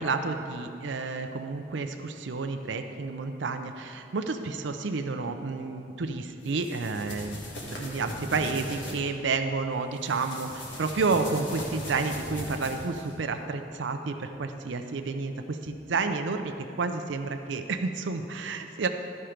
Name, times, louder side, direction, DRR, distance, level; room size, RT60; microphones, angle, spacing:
voice 1, 0.0-18.9, right 4 dB, 80° right, 6 dB, 0.5 m, -30 dB
sound 1, 6.5-9.0 10.0-13.1, left 1 dB, 75° left, 1.6 m, -39 dB
13.0 x 4.5 x 5.0 m, 2.7 s
head